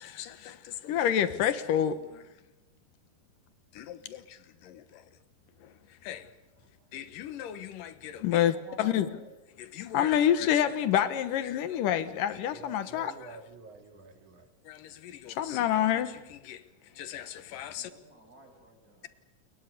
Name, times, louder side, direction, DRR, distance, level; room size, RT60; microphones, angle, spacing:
voice 1, 0.0-2.2 3.7-4.4 4.6-5.0 6.0-6.3 6.9-9.1 9.7-13.1 14.7-16.6 17.0-17.9, left 10 dB, 85° left, 2.9 m, -29 dB
voice 2, 6.1-6.7 12.6-14.5, right 3 dB, 65° right, 3.9 m, -50 dB
voice 3, 8.3-9.3 17.8-19.1, right 1 dB, 25° right, 7.0 m, -51 dB
29.0 x 22.0 x 6.8 m
omnidirectional pair, 3.7 m